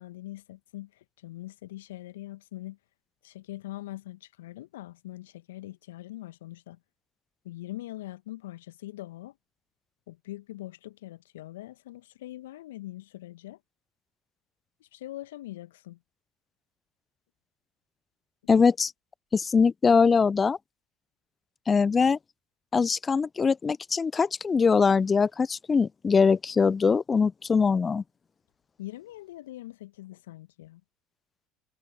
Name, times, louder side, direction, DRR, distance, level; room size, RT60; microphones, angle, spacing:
voice 1, 0.0-2.8 3.2-6.8 7.4-9.4 10.1-13.6 14.8-16.0 28.8-30.8, left 16 dB, 70° left, 1.6 m, -42 dB
voice 2, 18.5-18.9 19.3-20.6 21.7-22.2 22.7-28.0, left 5 dB, 25° left, 0.7 m, -22 dB
figure-of-eight pair, 70°, 0 cm